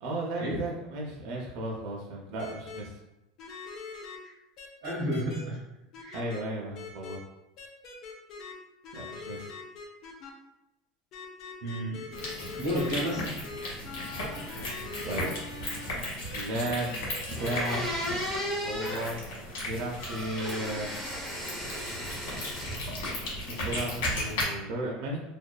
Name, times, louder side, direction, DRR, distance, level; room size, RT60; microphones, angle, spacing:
voice 1, 0.0-2.9 6.1-7.2 8.9-9.5 15.0-15.3 16.3-17.0 17.4-17.8 18.1-18.2 18.6-19.2 19.6-20.9 23.5-25.2, right 1 dB, 60° right, -2 dB, 0.4 m, -34 dB
sound 1, 2.4-2.8 3.4-4.2 4.6-5.4 5.9-6.4 6.7-7.2 7.6-8.5 8.8-10.3 11.1-15.8 16.2-16.4 16.8-18.3, left 4 dB, 45° left, 0.4 m, -43 dB
voice 2, 4.8-5.6 6.0-6.2 11.6-12.2 12.6-13.2, equal, 90° right, -7 dB, 0.7 m, -31 dB
sound 2, 12.1-24.4, left 1 dB, 85° left, 0.9 m, -36 dB
sound 3, 17.3-19.1 20.0-22.8 23.1-23.8, equal, ahead, 1.2 m, -35 dB
2.5 x 2.2 x 2.2 m, 0.95 s
supercardioid pair, 150°, 0 cm